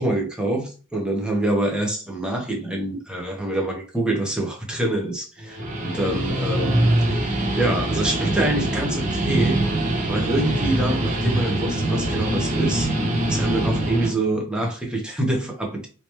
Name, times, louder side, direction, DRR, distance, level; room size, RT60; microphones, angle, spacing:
voice 1, 0.0-9.6 10.1-12.9 13.3-15.9, right 1 dB, 5° right, 0.9 m, -26 dB
Guitar, 5.4-14.1, right 1 dB, 40° right, 0.8 m, -23 dB
3.3 x 3.0 x 3.0 m
head